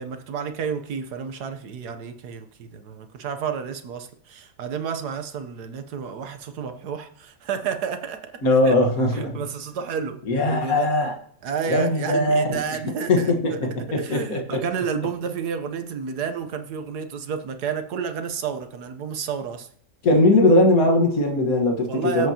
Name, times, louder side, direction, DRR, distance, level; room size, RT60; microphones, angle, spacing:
voice 1, 0.0-8.7 9.1-10.9 11.4-13.6 14.0-19.7 21.9-22.3, right 6 dB, 70° right, 8 dB, 1.4 m, -31 dB
voice 2, 8.4-9.4 10.3-11.1 11.7-12.8 13.1-14.6 20.0-22.3, left 1 dB, 55° left, 2 dB, 1.9 m, -20 dB
22.5 x 7.8 x 2.9 m, 0.64 s
omnidirectional pair, 1.8 m